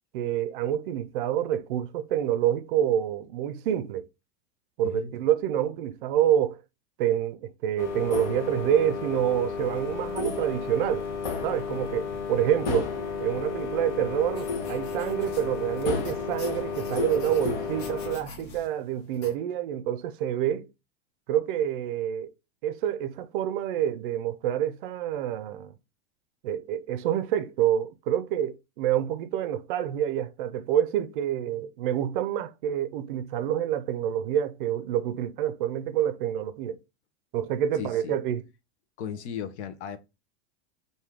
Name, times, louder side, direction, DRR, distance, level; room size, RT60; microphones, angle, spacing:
voice 1, 0.1-4.0 4.8-6.6 7.0-11.0 11.4-12.9 13.2-20.7 21.3-22.3 22.6-25.7 26.4-36.8 37.3-38.4, right 10 dB, 50° right, 0.5 m, -27 dB
voice 2, 4.8-5.1 37.8-38.2 39.0-40.0, left 8 dB, 85° left, 0.9 m, -36 dB
sound 1, 7.8-18.2, left 5 dB, 60° left, 1.2 m, -32 dB
sound 2, 9.6-18.6, left 4 dB, 5° left, 0.3 m, -48 dB
sound 3, 14.3-19.3, left 3 dB, 45° left, 1.3 m, -48 dB
4.7 x 2.7 x 3.5 m
supercardioid pair, 175°, 33 cm